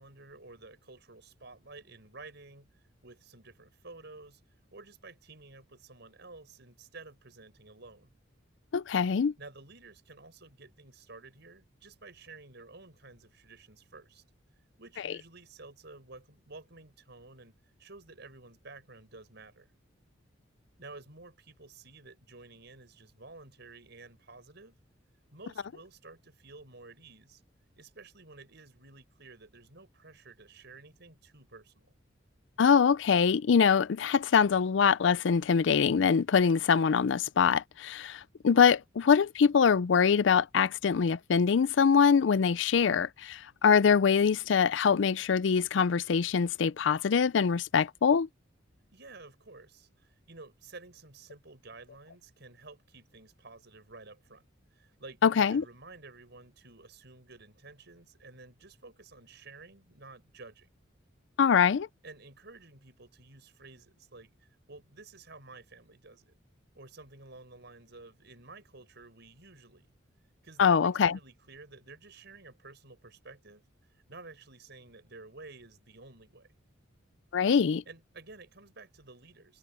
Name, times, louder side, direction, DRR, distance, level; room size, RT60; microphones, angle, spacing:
voice 1, 0.0-2.7 3.0-4.4 4.7-8.1 9.4-14.2 14.8-19.7 20.8-24.8 25.3-27.4 27.8-31.9 48.9-54.4 54.7-60.7 62.0-66.4 66.7-69.9 70.4-73.6 74.1-76.5 77.9-79.6, right 3 dB, 60° right, 6.5 m, -52 dB
voice 2, 8.7-9.3 32.6-48.3 55.2-55.6 61.4-61.9 70.6-71.2 77.3-77.8, left 6 dB, 65° left, 0.4 m, -24 dB
head